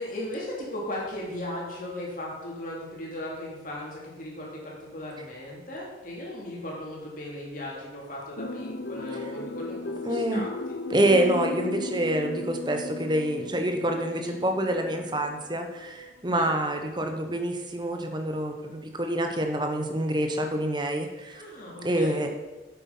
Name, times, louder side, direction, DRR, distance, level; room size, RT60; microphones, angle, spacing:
voice 1, 0.0-11.2 14.1-14.4 16.3-16.5 21.4-22.2, left 1 dB, 45° left, -4 dB, 3.1 m, -37 dB
sound 1, 8.4-16.1 16.4-16.5, left 2 dB, 65° left, 0.7 m, -36 dB
voice 2, 10.0-10.5 10.9-21.4 21.8-22.3, right 1 dB, 25° right, 4 dB, 1.0 m, -27 dB
8.5 x 8.1 x 5.5 m, 1.2 s
head